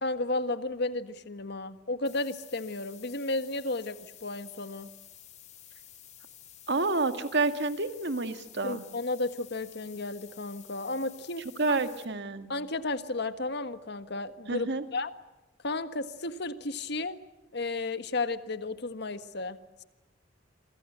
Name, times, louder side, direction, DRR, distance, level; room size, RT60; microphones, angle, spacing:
voice 1, 0.0-4.9 8.6-11.8 12.5-15.1 15.6-17.2 17.5-19.8, left 2 dB, 60° left, 11 dB, 1.5 m, -33 dB
sound 1, 2.0-12.0, left 10 dB, 40° left, 2.9 m, -52 dB
voice 2, 6.7-8.8 11.6-12.5 14.5-14.8, right 3 dB, 65° right, 9 dB, 2.0 m, -29 dB
28.0 x 24.0 x 8.0 m, 1.0 s
head